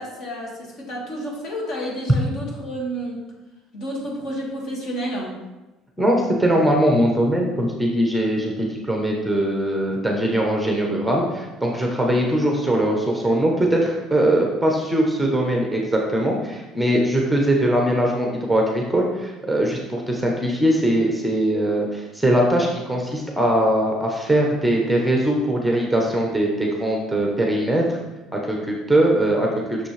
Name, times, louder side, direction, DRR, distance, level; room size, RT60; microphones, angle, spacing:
voice 1, 0.0-3.3 3.7-5.4 12.0-12.2, equal, 50° left, -2 dB, 1.9 m, -30 dB
voice 2, 6.0-28.0 28.3-29.9, right 1 dB, 5° right, 0 dB, 0.8 m, -21 dB
6.2 x 6.0 x 3.3 m, 1.1 s
cardioid pair, 135°, 0 cm